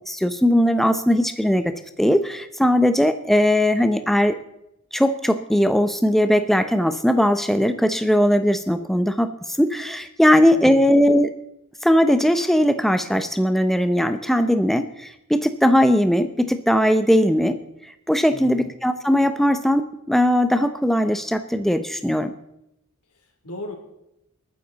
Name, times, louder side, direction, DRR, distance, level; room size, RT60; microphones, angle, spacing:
voice 1, 0.1-4.4 4.9-11.3 11.8-17.6 18.1-22.3, equal, ahead, 9 dB, 0.6 m, -19 dB
voice 2, 10.3-10.8 18.3-18.7 23.1-23.7, left 1 dB, 80° left, 3 dB, 3.2 m, -38 dB
28.0 x 9.7 x 4.0 m, 0.83 s
head